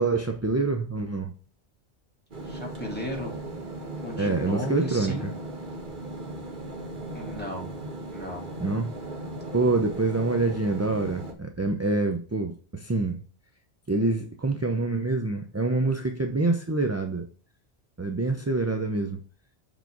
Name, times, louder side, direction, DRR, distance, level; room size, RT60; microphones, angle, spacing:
voice 1, 0.0-1.3 4.2-5.3 8.6-8.9 9.5-13.2 13.9-17.3 18.0-19.2, right 3 dB, 25° right, 0.4 m, -26 dB
sound 1, 2.3-11.3, right 2 dB, 50° right, 1.3 m, -37 dB
voice 2, 2.4-3.3 4.0-5.3 7.1-7.7 8.1-8.4, left 1 dB, 10° left, 2.3 m, -34 dB
7.1 x 3.9 x 4.7 m
omnidirectional pair, 1.1 m